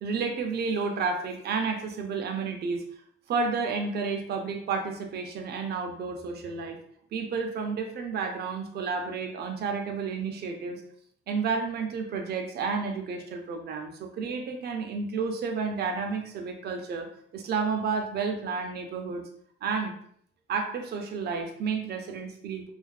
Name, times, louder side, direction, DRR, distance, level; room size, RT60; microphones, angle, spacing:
voice 1, 0.0-2.8 3.3-6.8 7.1-10.8 11.3-19.2 19.6-19.9 20.5-22.7, right 5 dB, 55° right, 4 dB, 0.5 m, -31 dB
2.4 x 2.4 x 2.2 m, 0.65 s
cardioid pair, 90°, 20 cm